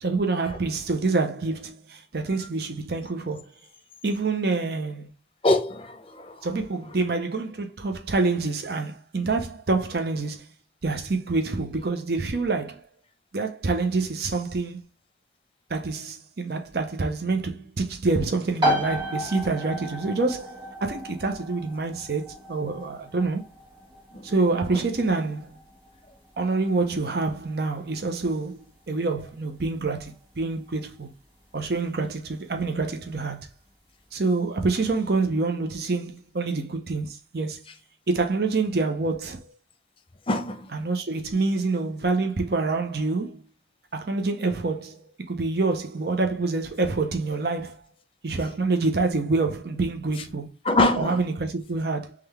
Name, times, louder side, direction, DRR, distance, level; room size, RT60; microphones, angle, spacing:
voice 1, 0.0-3.5 4.0-5.1 6.4-10.5 10.8-12.8 13.3-14.9 15.7-23.4 24.2-25.6 26.4-31.1 31.5-33.5 34.1-37.6 38.1-39.4 40.7-43.4 43.9-47.8 48.2-50.5 51.0-52.1, right 3 dB, 65° right, 0.7 m, -27 dB
voice 2, 5.4-6.4 24.1-24.3 24.7-24.8 40.3-40.7 50.6-51.2, left 2 dB, 30° left, 0.6 m, -24 dB
sound 1, 18.6-33.1, equal, 25° right, 1.7 m, -35 dB
3.8 x 3.4 x 3.3 m
head